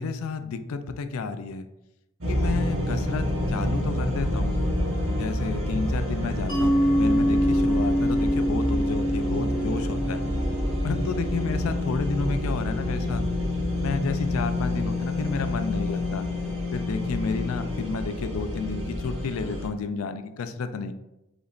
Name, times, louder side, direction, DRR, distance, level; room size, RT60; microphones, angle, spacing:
voice 1, 0.0-1.7 2.3-4.5 5.2-10.2 10.8-13.2 13.8-16.2 16.7-20.9, left 4 dB, 75° left, 10 dB, 0.4 m, -31 dB
sound 1, 2.2-19.7, left 1 dB, 65° right, 1.3 m, -28 dB
Mallet percussion, 6.5-11.9, equal, 20° left, 1.2 m, -25 dB
5.0 x 4.1 x 2.4 m, 0.91 s
head